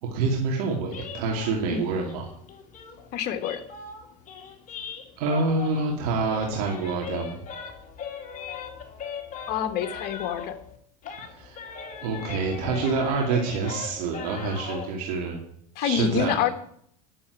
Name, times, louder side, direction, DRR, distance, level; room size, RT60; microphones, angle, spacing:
voice 1, 0.0-2.3 5.2-7.4 11.3-15.4 15.8-16.5, right 4 dB, 75° right, 0 dB, 2.6 m, -27 dB
sound 1, 0.9-6.0 6.3-10.8 11.0-14.9, left 6 dB, 40° left, 2.6 m, -39 dB
voice 2, 3.1-3.6 9.5-10.6 15.7-16.5, left 9 dB, 55° left, 9 dB, 1.7 m, -27 dB
10.0 x 7.0 x 8.5 m, 0.66 s
supercardioid pair, 110°, 20 cm